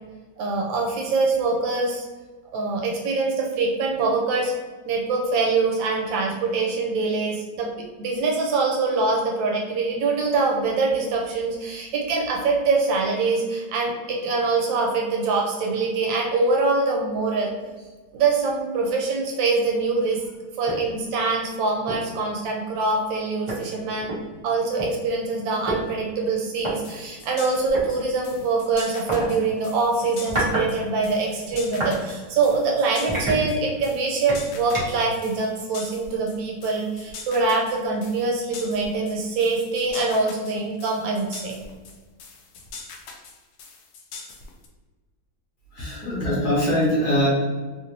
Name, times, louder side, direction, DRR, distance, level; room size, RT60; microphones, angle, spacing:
voice 1, 0.4-2.0 2.5-4.5 4.8-17.5 18.1-20.2 20.6-24.1 24.4-41.5, right 3 dB, 75° right, 0 dB, 1.3 m, -24 dB
sound 1, 20.7-20.9 21.3-21.4 21.9-22.1 23.1-23.2 23.5-24.9 25.7-25.8 26.6-26.7 27.7-27.9 29.1-29.3 30.0-30.7 31.0-32.0 32.4-32.6 33.1-33.9 34.3-35.1, right 2 dB, 35° right, 0.4 m, -29 dB
sound 2, 26.6-44.7, left 4 dB, 85° left, 0.8 m, -42 dB
voice 2, 45.7-47.3, equal, 60° left, -5 dB, 1.1 m, -22 dB
3.3 x 2.5 x 2.9 m, 1.3 s
omnidirectional pair, 2.2 m